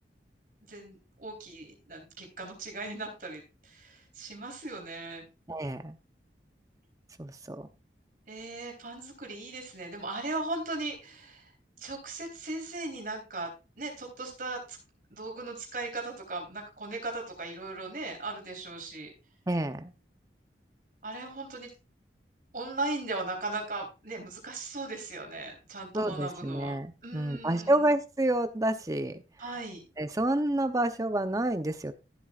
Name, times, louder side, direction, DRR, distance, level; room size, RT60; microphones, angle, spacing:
voice 1, 0.7-5.2 8.3-11.5 11.8-13.5 13.8-14.8 15.1-19.1 21.0-21.7 22.5-26.7 27.0-27.8 29.4-29.9, right 2 dB, 50° right, 2 dB, 3.7 m, -38 dB
voice 2, 5.5-6.0 7.2-7.7 19.5-19.9 25.9-29.2 30.0-31.9, right 1 dB, 20° right, 9 dB, 0.7 m, -29 dB
14.5 x 7.7 x 2.4 m, 0.30 s
head